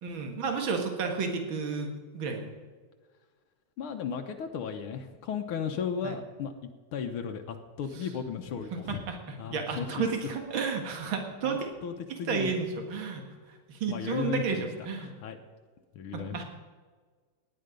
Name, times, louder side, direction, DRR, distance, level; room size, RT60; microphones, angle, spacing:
voice 1, 0.0-2.5 6.0-6.2 8.7-11.7 12.1-13.2 13.7-15.1 16.1-16.4, right 5 dB, 65° right, 4 dB, 2.5 m, -32 dB
voice 2, 3.8-6.5 6.9-9.0 9.4-10.0 11.4-12.5 13.9-14.7 15.2-15.4 15.9-16.4, left 7 dB, 80° left, 4 dB, 1.8 m, -35 dB
18.0 x 10.0 x 5.2 m, 1.5 s
omnidirectional pair, 2.4 m